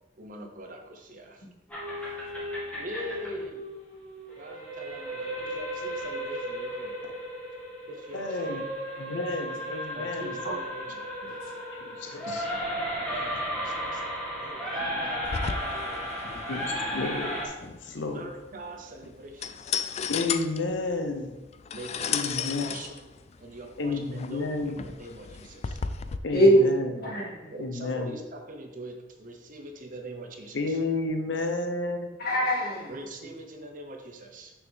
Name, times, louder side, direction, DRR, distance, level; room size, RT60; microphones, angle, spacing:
voice 1, 0.2-1.5 2.8-3.7 4.4-7.1 7.9-8.5 9.9-11.1 13.0-16.6 18.1-19.6 21.7-23.1 23.4-25.8 27.5-30.8 32.9-34.5, right 1 dB, 50° right, 4 dB, 0.9 m, -42 dB
sound 1, 1.7-17.5, equal, 10° left, 2.0 m, -34 dB
voice 2, 8.1-8.6 9.0-10.3 11.7-12.5 16.5-18.3 20.1-21.3 22.1-22.8 23.8-24.8 26.2-26.9 27.6-28.2 30.5-32.1, left 3 dB, 85° left, 5 dB, 0.7 m, -31 dB
sound 2, 15.2-26.2, left 6 dB, 35° left, 0.3 m, -35 dB
voice 3, 26.3-27.5 32.2-32.9, right 1 dB, 55° left, -4 dB, 2.2 m, -22 dB
6.3 x 6.2 x 3.5 m, 1.1 s
head